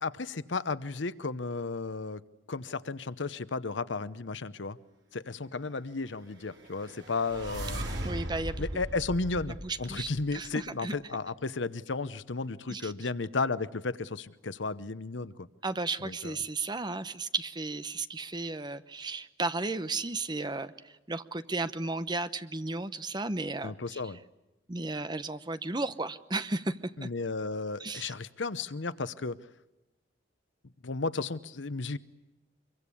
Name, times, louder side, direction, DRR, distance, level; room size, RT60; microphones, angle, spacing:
voice 1, 0.0-2.2 2.5-4.8 5.1-7.9 8.6-15.5 16.0-16.4 23.6-24.2 27.0-29.4 30.8-32.0, left 3 dB, 75° left, 15 dB, 0.9 m, -34 dB
sound 1, 6.5-10.6, right 1 dB, 70° right, 5.5 m, -38 dB
voice 2, 8.0-8.6 9.6-10.9 12.7-12.9 15.6-20.7 21.1-24.0 24.7-27.1 27.8-28.1, right 3 dB, 25° right, 12 dB, 0.8 m, -34 dB
25.0 x 23.0 x 8.5 m, 1.0 s
head